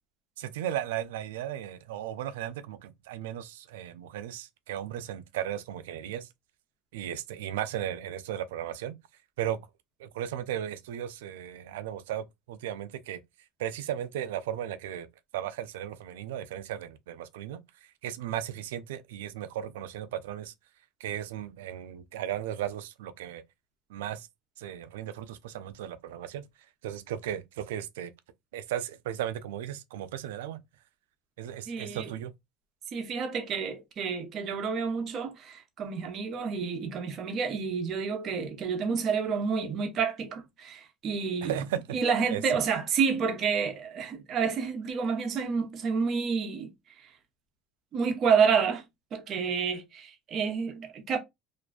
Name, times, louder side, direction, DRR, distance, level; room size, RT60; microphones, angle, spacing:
voice 1, 0.4-6.3 6.9-9.0 9.4-9.6 10.0-13.2 13.6-15.1 15.3-17.6 18.0-20.5 21.0-23.4 23.9-24.3 24.6-26.4 26.8-28.1 28.5-30.6 31.4-32.3 41.4-41.8 42.3-42.4, right 11 dB, 85° right, 0.3 m, -36 dB
voice 2, 31.7-32.1 32.9-41.6 41.9-46.7 47.9-48.8 49.1-51.2, right 6 dB, 45° right, 0.7 m, -29 dB
2.5 x 2.2 x 2.3 m
supercardioid pair, 95°, 0 cm